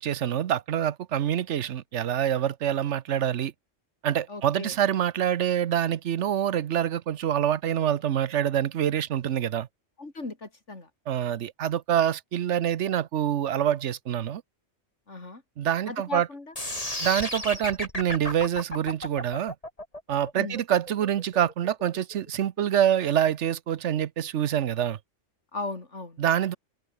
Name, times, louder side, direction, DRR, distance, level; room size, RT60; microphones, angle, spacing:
voice 1, 0.0-3.5 4.0-9.7 11.1-14.4 15.6-16.3 17.0-19.5 20.1-25.0 26.2-26.6, right 10 dB, 75° right, 1.1 m, -26 dB
voice 2, 4.3-4.8 10.0-10.9 15.1-15.4 15.9-16.5 20.4-20.6 25.5-26.2, left 2 dB, 75° left, 4.1 m, -37 dB
sound 1, 16.6-22.6, left 1 dB, 30° left, 4.6 m, -34 dB
open air
omnidirectional pair, 1.2 m